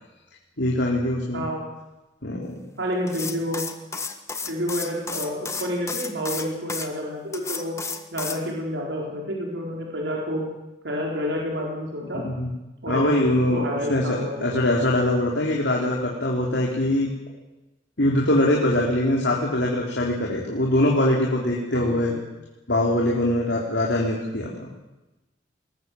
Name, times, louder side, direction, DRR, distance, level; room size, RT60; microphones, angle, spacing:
voice 1, 0.6-1.4 2.2-2.6 12.2-12.5 12.9-13.6 13.9-17.1 18.0-22.1 22.7-24.7, left 1 dB, 75° left, -2 dB, 3.7 m, -22 dB
voice 2, 1.3-1.7 2.8-3.6 4.5-7.8 8.1-10.4 10.8-12.3 12.8-14.6 21.7-22.2, equal, 85° right, -2 dB, 4.5 m, -29 dB
sound 1, 3.1-6.9 7.3-8.4, left 4 dB, 15° left, 1.6 m, -32 dB
21.0 x 20.0 x 7.8 m, 1.0 s
head